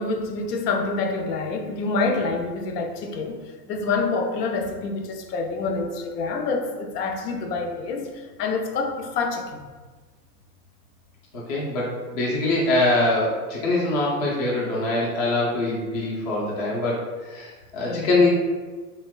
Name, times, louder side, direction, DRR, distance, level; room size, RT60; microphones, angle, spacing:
voice 1, 0.0-9.6 17.8-18.2, left 3 dB, 90° left, 3 dB, 0.6 m, -27 dB
voice 2, 11.3-17.0 17.3-18.3, left 2 dB, 30° left, -5 dB, 0.3 m, -23 dB
2.9 x 2.1 x 2.2 m, 1.4 s
supercardioid pair, 155°, 46 cm